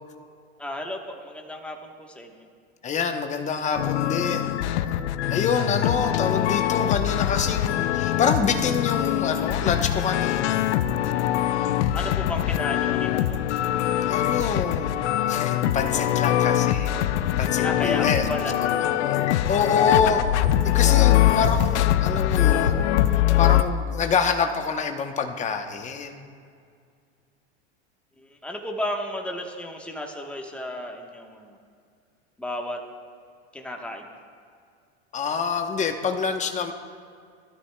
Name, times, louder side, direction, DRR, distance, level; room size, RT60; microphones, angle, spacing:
voice 1, 0.6-2.5 11.9-13.6 17.6-18.5 28.2-31.6 32.4-32.8 33.5-34.1, left 1 dB, 5° left, 1 dB, 1.2 m, -33 dB
voice 2, 2.8-4.6 5.3-10.7 14.1-14.9 15.3-17.0 17.4-18.3 18.6-20.2 20.6-22.9 23.4-26.3 35.1-36.7, left 6 dB, 20° left, 5 dB, 0.9 m, -26 dB
sound 1, 3.8-23.6, left 12 dB, 85° left, 0.6 m, -23 dB
20.0 x 13.0 x 2.3 m, 2.3 s
supercardioid pair, 125°, 33 cm